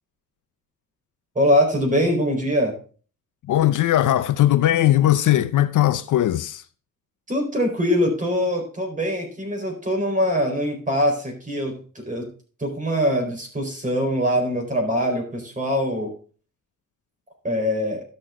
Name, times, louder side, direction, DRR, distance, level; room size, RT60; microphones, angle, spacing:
voice 1, 1.3-2.8 7.3-12.3 12.6-16.1 17.4-18.0, equal, 20° right, 4.2 m, -23 dB
voice 2, 3.5-6.6, left 13 dB, 60° left, 0.6 m, -19 dB
12.5 x 6.6 x 3.7 m
cardioid pair, 135°, 34 cm